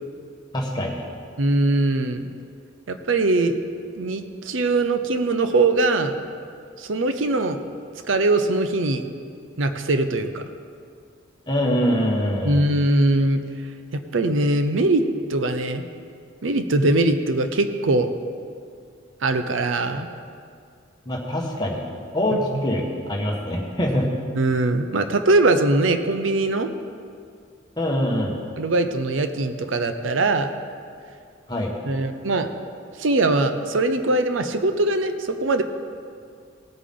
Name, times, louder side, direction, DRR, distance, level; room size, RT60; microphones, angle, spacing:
voice 1, 0.5-1.0 11.5-12.6 21.0-21.9 22.1-24.1 27.8-28.4 31.5-31.7, equal, 20° left, -1 dB, 1.6 m, -24 dB
voice 2, 1.4-2.2 2.9-3.5 4.0-6.2 6.8-7.6 8.1-9.0 9.6-10.5 12.4-13.4 14.1-15.0 15.3-15.8 16.4-18.1 19.2-20.1 22.3-22.4 24.4-26.7 28.6-30.5 31.9-32.5 33.0-35.6, right 2 dB, 75° right, 8 dB, 0.7 m, -21 dB
18.5 x 8.5 x 3.8 m, 2.3 s
head